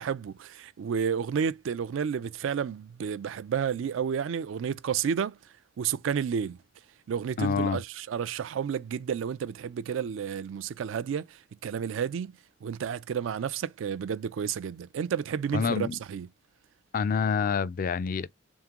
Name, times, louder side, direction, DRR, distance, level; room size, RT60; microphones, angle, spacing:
voice 1, 0.0-5.4 5.8-6.6 7.1-11.4 11.6-12.3 12.6-16.3, right 7 dB, 70° right, 0.3 m, -31 dB
voice 2, 7.4-7.8 15.5-16.0 16.9-18.3, left 6 dB, 45° left, 0.3 m, -27 dB
3.6 x 3.6 x 2.8 m
head